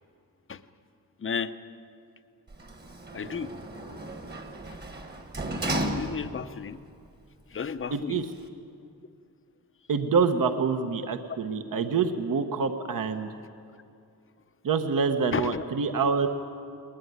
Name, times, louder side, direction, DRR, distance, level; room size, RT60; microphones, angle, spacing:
voice 1, 1.2-1.5 3.1-3.5 6.0-6.8 7.5-8.3 15.3-15.6, left 6 dB, 30° left, 11 dB, 0.7 m, -32 dB
Sliding door, 2.5-6.6 7.1-7.2, right 1 dB, 25° right, 1.5 m, -34 dB
voice 2, 7.9-8.2 9.9-13.3 14.6-16.3, right 5 dB, 55° right, 7 dB, 1.2 m, -26 dB
20.5 x 20.5 x 9.5 m, 2.4 s
wide cardioid pair, 170°, 39 cm